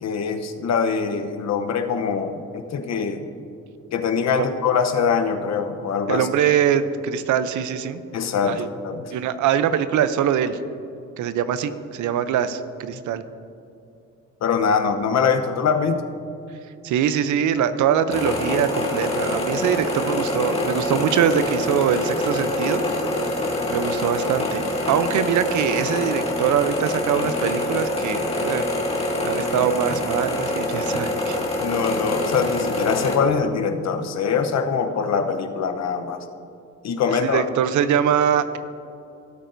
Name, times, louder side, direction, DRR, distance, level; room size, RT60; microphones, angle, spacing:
voice 1, 0.0-3.3 3.9-6.3 8.1-9.1 14.4-16.0 31.6-36.2 36.8-37.4, left 6 dB, 60° left, 7 dB, 0.9 m, -23 dB
voice 2, 6.1-8.0 8.5-8.7 9.1-10.6 11.2-13.2 16.8-22.8 23.7-28.6 29.2-31.4 37.1-38.6, right 9 dB, 75° right, 12 dB, 0.6 m, -23 dB
sound 1, 18.1-33.1, left 1 dB, 20° left, 1.9 m, -25 dB
17.0 x 8.3 x 2.7 m, 2.6 s
cardioid pair, 90°, 30 cm